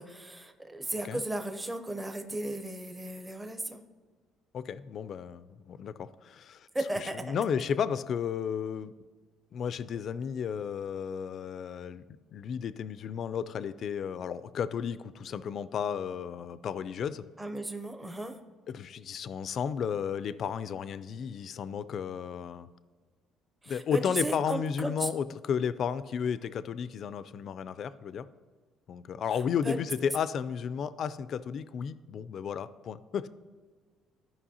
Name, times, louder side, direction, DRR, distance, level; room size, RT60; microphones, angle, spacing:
voice 1, 0.0-3.8 6.7-7.3 17.4-18.4 23.6-25.1 29.6-29.8, right 1 dB, 10° right, 6 dB, 0.6 m, -35 dB
voice 2, 4.5-6.7 7.0-8.9 9.5-12.0 12.3-17.2 18.7-22.7 23.7-28.3 28.9-33.3, left 7 dB, 50° left, 15 dB, 0.3 m, -33 dB
12.5 x 5.2 x 2.8 m, 1.5 s
cardioid pair, 115°, 0 cm